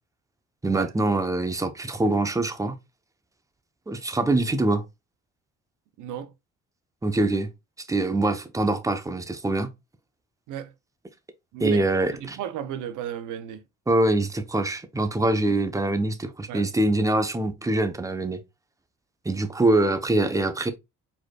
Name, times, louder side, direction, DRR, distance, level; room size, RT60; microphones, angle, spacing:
voice 1, 0.6-2.8 3.9-4.8 7.0-7.5 7.8-9.7 11.6-12.4 13.9-18.4 19.2-20.7, right 2 dB, 10° right, 0.8 m, -24 dB
voice 2, 6.0-6.3 10.5-10.7 11.5-11.9 12.2-13.6 16.5-16.7, right 9 dB, 85° right, 0.7 m, -33 dB
4.7 x 4.4 x 2.3 m
cardioid pair, 90°, 30 cm